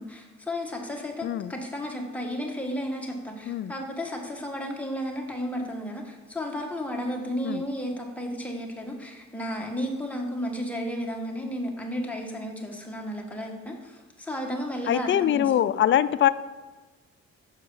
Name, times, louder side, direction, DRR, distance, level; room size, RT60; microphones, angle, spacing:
voice 1, 0.0-15.8, equal, 5° left, 0 dB, 1.4 m, -33 dB
voice 2, 1.2-1.5 3.5-3.7 7.4-7.6 14.9-16.3, left 11 dB, 40° left, 14 dB, 0.4 m, -23 dB
6.5 x 4.8 x 5.5 m, 1.3 s
cardioid pair, 90°, 30 cm